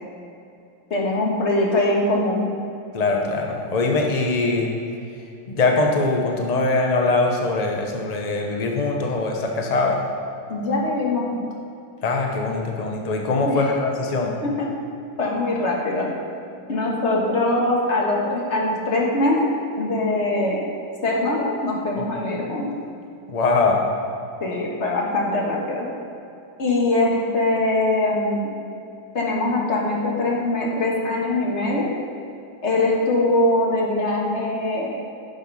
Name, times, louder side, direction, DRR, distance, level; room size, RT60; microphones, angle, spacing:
voice 1, 0.9-2.5 10.5-11.4 13.4-13.7 14.4-14.7 15.2-16.1 16.7-20.7 21.0-22.7 24.4-25.9 26.6-28.5 29.1-31.9 32.6-35.0, left 2 dB, 40° left, -2 dB, 1.7 m, -22 dB
voice 2, 2.9-4.7 5.5-10.0 12.0-14.3 22.0-22.1 23.3-23.8, left 3 dB, 55° left, 1 dB, 0.4 m, -22 dB
10.5 x 6.7 x 5.5 m, 2.8 s
omnidirectional pair, 2.1 m